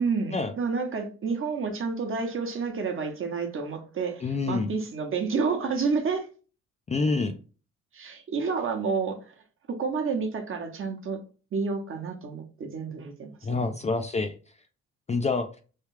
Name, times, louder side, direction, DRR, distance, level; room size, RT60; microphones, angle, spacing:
voice 1, 0.0-6.3 7.9-9.3 9.7-11.2 11.5-13.7, right 5 dB, 45° right, 0.9 m, -30 dB
voice 2, 4.2-4.7 6.9-7.4 13.4-14.3 15.1-15.5, left 3 dB, 25° left, 0.4 m, -27 dB
3.2 x 2.3 x 3.1 m
cardioid pair, 90°, 30 cm